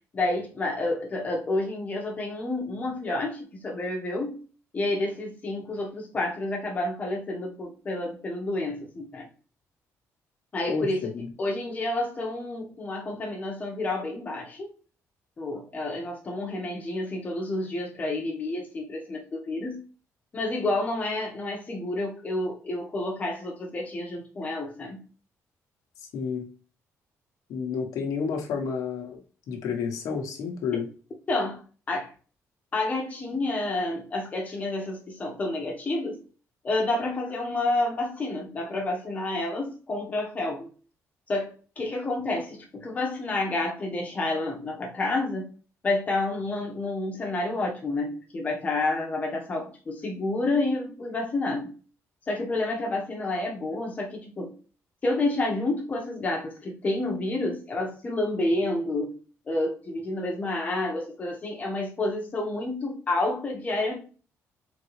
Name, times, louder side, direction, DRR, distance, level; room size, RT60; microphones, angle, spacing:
voice 1, 0.1-4.3 4.7-9.3 10.5-11.1 11.4-14.7 15.4-19.8 20.3-25.0 30.7-30.8 31.3-31.6 31.9-32.1 32.7-36.2 36.6-40.7 41.3-45.5 45.8-51.7 52.3-54.5 55.0-59.1 59.5-64.0, left 2 dB, 25° left, 0 dB, 1.2 m, -29 dB
voice 2, 10.7-11.3 26.1-26.5 27.5-29.2 29.5-30.9, left 5 dB, 80° left, 2 dB, 1.1 m, -30 dB
3.9 x 3.8 x 3.2 m, 0.38 s
cardioid pair, 160°, 6 cm